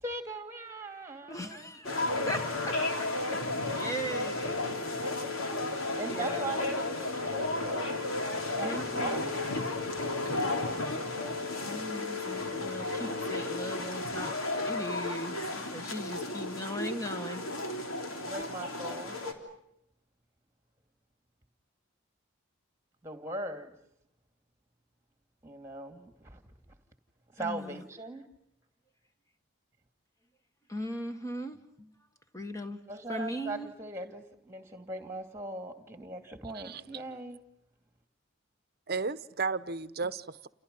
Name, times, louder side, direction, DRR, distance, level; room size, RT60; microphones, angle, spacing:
voice 1, 0.0-1.8 6.0-8.0 8.5-9.4 18.2-19.2 23.0-23.7 25.4-26.4 27.4-28.2 32.9-37.4, right 2 dB, 15° right, 2.5 m, -40 dB
voice 2, 1.3-4.6 5.5-6.5 8.6-9.4 11.7-17.4 27.4-27.8 30.7-31.9 32.3-32.8 33.1-33.7, equal, 15° left, 1.6 m, -39 dB
sound 1, 1.8-19.3, left 2 dB, 85° left, 3.6 m, -33 dB
voice 3, 36.5-37.0 38.9-40.5, right 4 dB, 50° right, 0.9 m, -34 dB
29.5 x 29.0 x 5.5 m
head